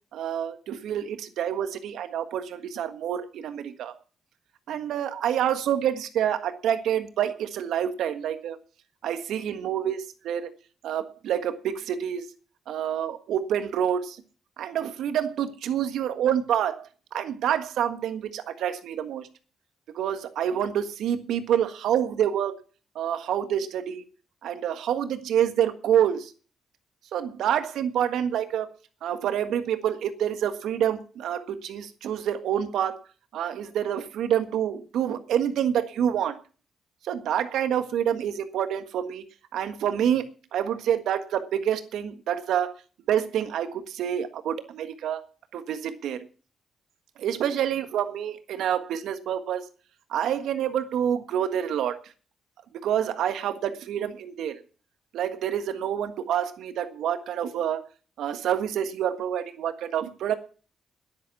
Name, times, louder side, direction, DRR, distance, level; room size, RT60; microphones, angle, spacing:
voice 1, 0.1-3.9 4.7-8.6 9.0-10.5 10.8-12.2 12.7-14.2 14.6-19.3 19.9-22.6 22.9-24.0 24.4-26.3 27.1-28.7 29.0-33.0 33.3-36.4 37.0-39.2 39.5-40.2 40.5-42.7 43.1-45.2 45.5-46.2 47.2-49.6 50.1-52.0 52.8-54.5 55.1-57.8 58.2-60.3, right 9 dB, 75° right, 10 dB, 1.5 m, -27 dB
11.0 x 10.5 x 7.3 m, 0.39 s
supercardioid pair, 50°, 0 cm